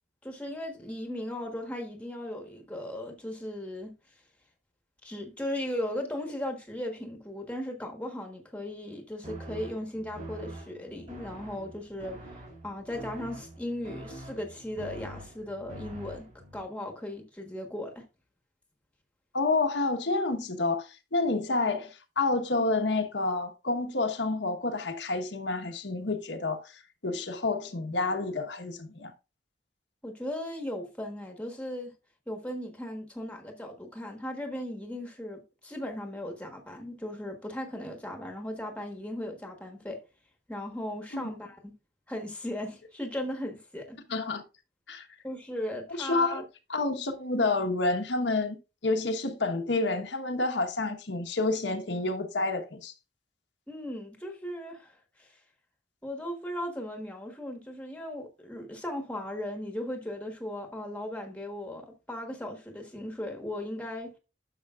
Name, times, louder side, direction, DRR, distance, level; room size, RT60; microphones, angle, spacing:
voice 1, 0.2-3.9 5.0-12.3 12.6-16.3 16.5-18.0 30.0-31.9 32.3-40.0 40.5-41.7 42.1-44.0 45.2-46.4 53.7-55.4 56.0-64.1, left 1 dB, 5° left, 1.3 m, -37 dB
sound 1, 9.2-16.6, right 1 dB, 40° right, 4.3 m, -45 dB
voice 2, 19.3-26.6 27.0-29.1 41.1-41.3 44.1-44.4 44.9-45.0 46.0-46.4 46.7-48.6 48.8-52.9, left 3 dB, 80° left, 1.2 m, -29 dB
10.5 x 6.6 x 2.4 m
head